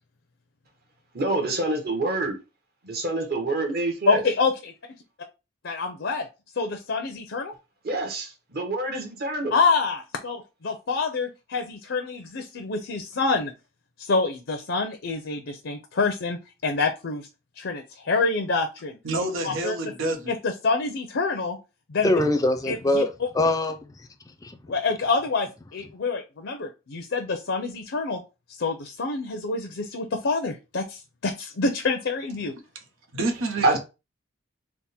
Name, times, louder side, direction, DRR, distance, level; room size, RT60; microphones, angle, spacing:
voice 1, 1.1-2.4 2.8-4.2 7.8-9.6 33.6-33.8, right 2 dB, 50° right, 1.1 m, -26 dB
voice 2, 4.1-4.7 5.6-6.3 6.6-7.5 9.5-13.5 14.0-17.3 17.6-19.0 19.4-19.9 20.3-21.6 21.9-22.1 22.7-23.3 24.7-28.2 28.6-32.5, left 4 dB, 70° left, 0.5 m, -27 dB
voice 3, 19.0-20.3 33.1-33.8, right 2 dB, 90° right, 0.9 m, -28 dB
voice 4, 22.0-24.7, left 1 dB, 20° left, 0.4 m, -24 dB
3.5 x 2.1 x 4.1 m
head